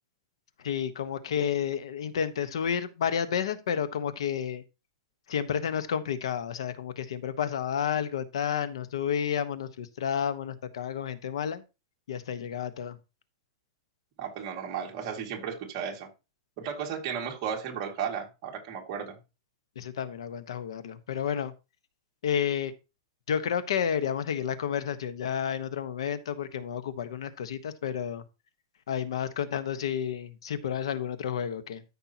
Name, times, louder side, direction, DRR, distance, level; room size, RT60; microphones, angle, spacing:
voice 1, 0.6-4.6 5.3-11.6 12.1-13.0 19.7-21.5 22.2-22.7 23.3-28.2 28.9-31.8, left 8 dB, 80° left, 12 dB, 1.1 m, -31 dB
voice 2, 14.2-16.1 16.6-19.2, right 7 dB, 35° right, 1 dB, 2.1 m, -34 dB
13.5 x 5.5 x 2.9 m, 0.27 s
supercardioid pair, 170°, 3 cm